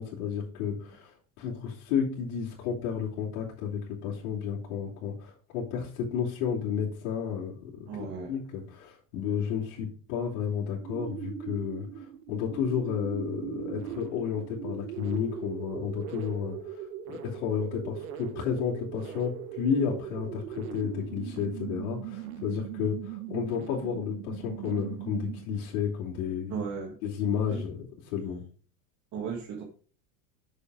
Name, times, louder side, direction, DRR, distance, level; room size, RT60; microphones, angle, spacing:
voice 1, 0.0-26.6 27.0-27.8 28.1-28.4, left 7 dB, 65° left, -6 dB, 2.9 m, -32 dB
voice 2, 7.9-8.4 26.5-27.0 27.5-27.6 29.1-29.6, right 6 dB, 40° right, 0 dB, 1.8 m, -35 dB
sound 1, 10.8-25.7, right 10 dB, 85° right, 1.2 m, -40 dB
7.0 x 6.6 x 4.8 m, 0.43 s
supercardioid pair, 115°, 42 cm